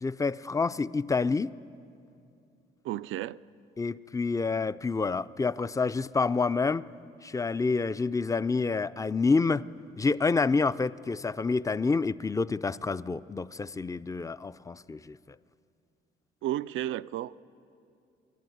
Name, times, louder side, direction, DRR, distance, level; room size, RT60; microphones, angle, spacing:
voice 1, 0.0-1.5 3.8-6.8 7.2-9.7 10.0-15.2, left 4 dB, 15° left, 0.4 m, -28 dB
voice 2, 2.8-3.4 16.4-17.4, right 13 dB, 80° right, 0.4 m, -32 dB
28.0 x 11.5 x 9.3 m
cardioid pair, 90°, 20 cm